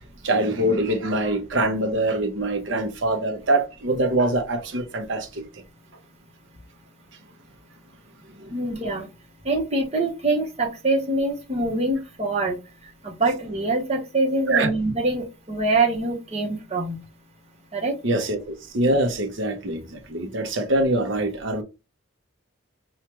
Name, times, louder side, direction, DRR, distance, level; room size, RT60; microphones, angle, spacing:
voice 1, 0.2-5.4 8.4-8.5 14.5-14.7 18.0-21.6, right 1 dB, 55° right, 0.8 m, -24 dB
voice 2, 8.5-9.1 9.4-12.6 13.0-17.0 17.7-17.9, right 2 dB, 30° right, 0.9 m, -24 dB
4.6 x 2.4 x 2.9 m
head